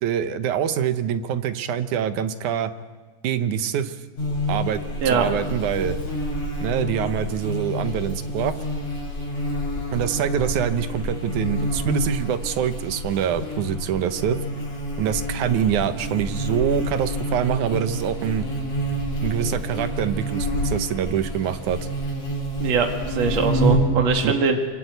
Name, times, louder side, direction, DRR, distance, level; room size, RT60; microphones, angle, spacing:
voice 1, 0.0-2.7 3.2-4.0 4.5-6.0 6.6-8.6 9.9-14.4 15.0-18.5 19.2-21.8 24.2-24.3, right 9 dB, 75° right, 11 dB, 2.4 m, -25 dB
Buzz, 4.2-24.0, equal, 60° left, 7.5 m, -28 dB
voice 2, 22.6-24.6, right 5 dB, 55° right, 4 dB, 3.2 m, -22 dB
26.5 x 25.0 x 8.0 m, 1.4 s
omnidirectional pair, 3.7 m